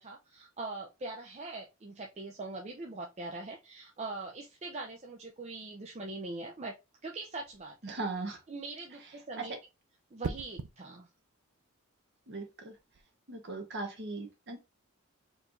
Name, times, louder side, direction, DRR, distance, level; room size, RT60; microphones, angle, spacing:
voice 1, 0.0-6.8 7.0-8.0 8.5-9.6 10.1-11.1, right 2 dB, 30° right, 0 dB, 0.5 m, -42 dB
sound 1, 7.4-7.8 10.2-10.8 12.7-13.0, right 4 dB, 85° right, 0.5 m, -39 dB
voice 2, 7.8-8.4 9.4-9.5 12.3-12.7 13.3-14.6, right 3 dB, 50° right, 3 dB, 1.3 m, -38 dB
4.5 x 3.2 x 2.6 m, 0.26 s
head